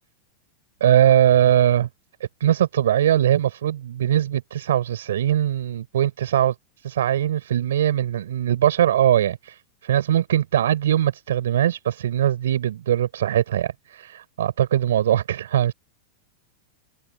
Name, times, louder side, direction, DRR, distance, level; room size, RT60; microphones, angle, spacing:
voice 1, 0.8-1.9 2.4-6.5 6.8-9.6 9.8-15.7, right 11 dB, 85° right, 6.9 m, -21 dB
supercardioid pair, 130°, 0 cm